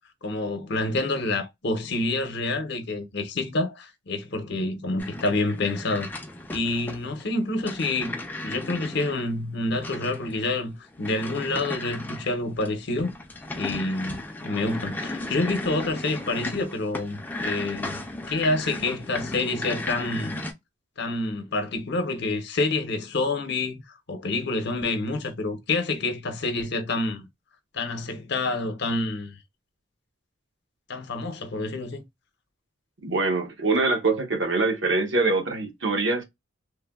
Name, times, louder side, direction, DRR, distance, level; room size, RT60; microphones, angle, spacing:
voice 1, 0.2-6.1 6.5-8.2 8.4-13.1 13.5-18.0 18.3-20.4 21.0-27.3 27.7-29.4 30.9-32.0, left 2 dB, 60° left, 0.7 m, -28 dB
sound 1, 5.0-20.5, left 1 dB, 10° left, 0.5 m, -35 dB
voice 2, 33.0-36.2, right 3 dB, 65° right, 0.9 m, -24 dB
3.2 x 2.2 x 2.2 m
head